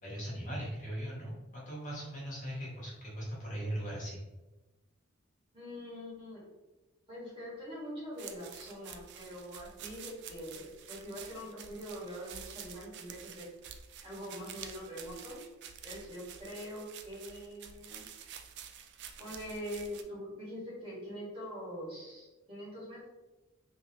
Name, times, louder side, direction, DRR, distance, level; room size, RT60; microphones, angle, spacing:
voice 1, 0.0-4.2, right 1 dB, 35° left, -6 dB, 1.2 m, -39 dB
voice 2, 5.5-6.4 7.1-13.4 14.0-15.4 15.8-18.0 19.2-23.1, equal, 25° right, -7 dB, 1.5 m, -43 dB
sound 1, 8.2-20.0, right 8 dB, 55° right, 0.3 m, -49 dB
3.6 x 3.0 x 2.8 m, 1.1 s
head